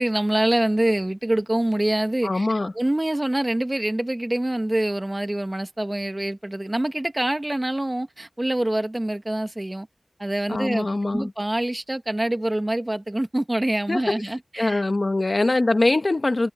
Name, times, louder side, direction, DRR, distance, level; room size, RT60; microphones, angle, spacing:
voice 1, 0.0-2.5 2.7-9.9 10.2-14.8, right 1 dB, 20° right, 1.4 m, -25 dB
voice 2, 2.2-2.7 10.5-11.3 13.9-14.2 14.6-16.5, left 2 dB, 40° left, 1.3 m, -22 dB
wide cardioid pair, 90°, 0 cm